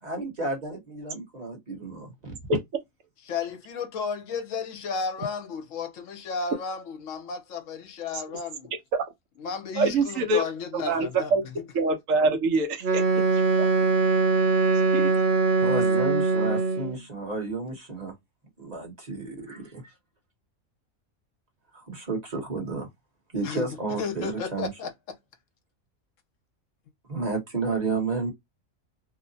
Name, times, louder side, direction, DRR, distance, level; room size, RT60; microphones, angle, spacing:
voice 1, 0.0-2.4 15.6-18.1 18.6-19.9 21.9-22.9 23.3-24.7 27.1-28.3, right 3 dB, 35° right, 1.1 m, -32 dB
voice 2, 3.3-8.7 9.4-11.7 23.4-25.2, left 5 dB, 70° left, 1.0 m, -33 dB
voice 3, 9.8-10.4 10.9-11.5 11.7-13.0 13.6-13.7 14.9-15.1, right 3 dB, 70° right, 1.1 m, -24 dB
Wind instrument woodwind instrument, 12.8-17.0, right 3 dB, 50° right, 0.7 m, -22 dB
2.9 x 2.0 x 2.6 m
omnidirectional pair, 1.4 m